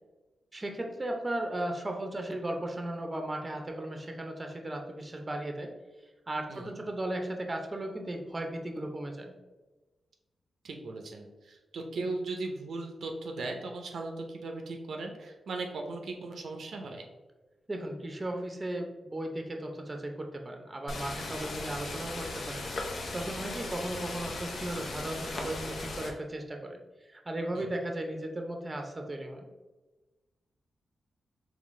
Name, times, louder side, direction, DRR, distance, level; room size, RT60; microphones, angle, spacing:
voice 1, 0.5-5.7 6.3-9.4 17.7-22.6 23.1-26.8 27.1-29.5, right 1 dB, 25° right, 3 dB, 0.6 m, -36 dB
voice 2, 10.6-17.1 27.5-27.7, right 3 dB, 75° right, 2 dB, 0.5 m, -38 dB
sound 1, 20.9-26.1, left 2 dB, 65° left, 0.7 m, -37 dB
3.8 x 3.3 x 3.1 m, 1.2 s
cardioid pair, 85°, 0 cm